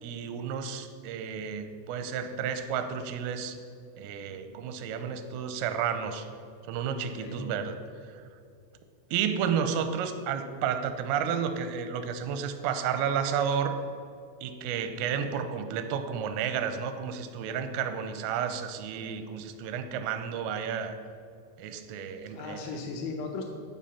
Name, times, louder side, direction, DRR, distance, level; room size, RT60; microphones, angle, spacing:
voice 1, 0.0-3.6 4.0-6.3 6.7-7.8 8.1-8.2 9.1-13.8 14.4-21.0 21.6-22.7, right 7 dB, 85° right, 9 dB, 3.3 m, -31 dB
voice 2, 6.9-7.4 22.0-23.4, left 4 dB, 85° left, 1 dB, 3.5 m, -38 dB
12.0 x 4.7 x 7.1 m, 2.4 s
omnidirectional pair, 5.7 m